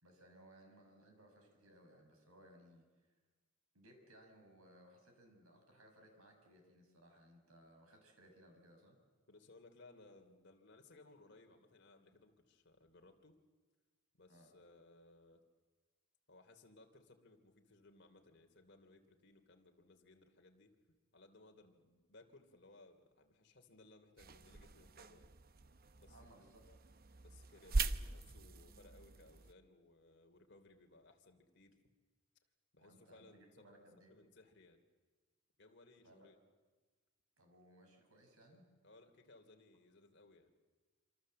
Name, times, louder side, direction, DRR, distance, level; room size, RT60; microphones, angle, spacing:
voice 1, 0.0-2.8 3.7-9.0 14.3-14.5 26.1-26.9 32.8-34.1 36.0-36.3 37.4-38.7, right 1 dB, 85° right, 4 dB, 6.1 m, -63 dB
voice 2, 9.3-13.4 14.1-15.4 16.3-20.7 21.1-25.3 25.9-26.2 27.2-31.8 32.7-33.7 34.1-34.8 35.6-36.4 38.8-40.5, left 2 dB, 55° left, 4 dB, 3.0 m, -63 dB
sound 1, 24.2-29.5, right 3 dB, 45° right, 0.8 m, -42 dB
26.5 x 26.0 x 7.7 m, 1.3 s
head